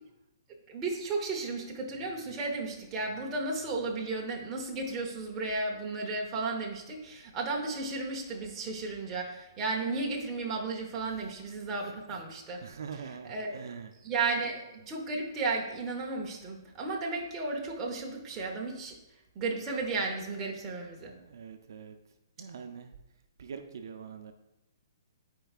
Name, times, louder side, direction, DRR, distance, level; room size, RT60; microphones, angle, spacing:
voice 1, 0.7-12.6 12.9-13.6 14.0-18.9 19.4-21.1, right 3 dB, 15° right, -1 dB, 0.8 m, -34 dB
voice 2, 12.6-13.9 21.1-22.0 22.4-22.9 23.4-24.3, right 6 dB, 60° right, 6 dB, 0.5 m, -43 dB
11.5 x 4.6 x 2.4 m, 0.95 s
hypercardioid pair, 170°, 2 cm